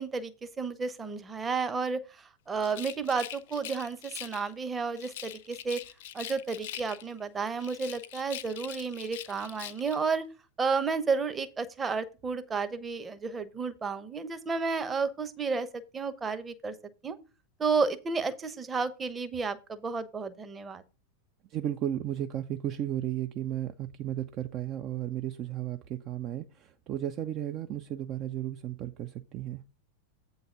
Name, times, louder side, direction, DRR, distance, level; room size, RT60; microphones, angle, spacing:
voice 1, 0.0-5.8 6.1-10.2 10.6-15.7 15.9-16.7 17.0-17.2 17.6-20.8, right 4 dB, 15° right, 11 dB, 0.9 m, -32 dB
Rattle, 2.6-4.5 5.0-7.2 7.6-10.0, left 11 dB, 55° left, 0.6 m, -43 dB
voice 2, 21.5-29.6, right 11 dB, 35° right, 9 dB, 0.5 m, -34 dB
8.4 x 4.0 x 6.7 m, 0.30 s
figure-of-eight pair, 90°, 0 cm